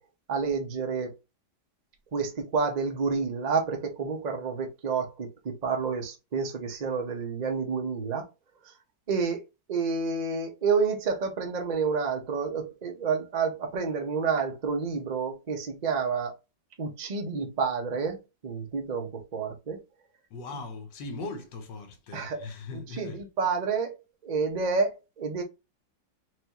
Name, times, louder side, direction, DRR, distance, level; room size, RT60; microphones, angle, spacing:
voice 1, 0.3-1.1 2.1-8.3 8.6-8.7 9.1-9.4 9.7-16.4 16.8-19.8 22.1-22.4 22.7-24.0 24.2-25.4, right 5 dB, 40° right, 0.6 m, -29 dB
voice 2, 20.3-23.2, left 3 dB, 85° left, 1.6 m, -39 dB
4.7 x 2.6 x 2.9 m
omnidirectional pair, 1.9 m